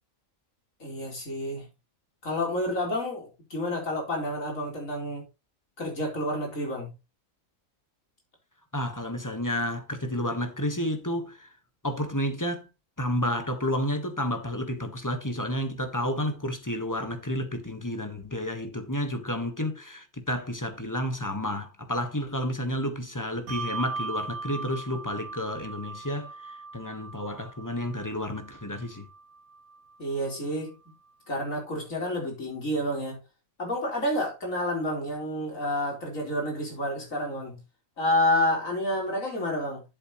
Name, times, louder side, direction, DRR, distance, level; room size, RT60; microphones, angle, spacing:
voice 1, 0.8-1.7 2.2-5.3 5.8-6.9 30.0-30.7 31.3-33.2 33.6-37.6 38.0-39.8, left 1 dB, 70° left, 4.7 m, -29 dB
voice 2, 8.7-11.5 11.8-12.7 13.0-29.1, left 1 dB, 15° left, 1.4 m, -31 dB
Bell, 23.5-30.3, right 4 dB, 85° right, 1.6 m, -39 dB
11.5 x 7.5 x 3.1 m
omnidirectional pair, 1.4 m